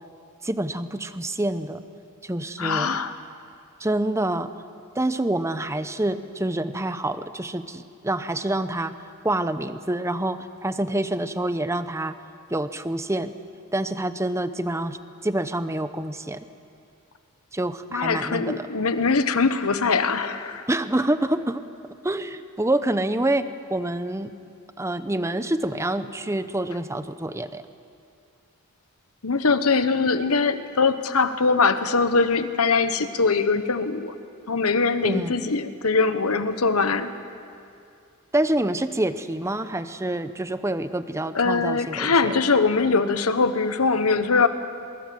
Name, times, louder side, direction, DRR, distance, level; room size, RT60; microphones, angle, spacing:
voice 1, 0.4-1.8 2.2-3.0 3.8-4.5 4.9-8.9 9.2-12.2 12.5-13.3 13.7-16.4 17.5-18.7 20.7-21.6 22.0-24.3 24.8-27.6 35.0-35.4 38.3-42.4, right 1 dB, 15° right, 11 dB, 0.7 m, -27 dB
voice 2, 2.6-3.1 17.9-20.6 29.2-34.1 34.5-37.1 41.3-44.5, left 4 dB, 80° left, 11 dB, 1.2 m, -22 dB
24.0 x 22.5 x 7.7 m, 2.5 s
head